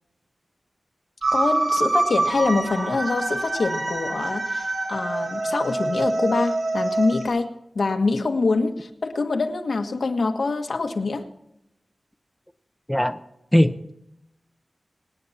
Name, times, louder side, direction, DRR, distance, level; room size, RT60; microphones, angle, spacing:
little E samplefile reverb, 1.2-7.3, right 2 dB, 60° right, 2.7 m, -25 dB
voice 1, 1.3-11.2, left 3 dB, 75° left, 4 dB, 1.6 m, -25 dB
voice 2, 13.5-13.9, equal, 5° left, 7 dB, 0.9 m, -19 dB
26.0 x 9.6 x 4.3 m, 0.85 s
wide cardioid pair, 85°, 0 cm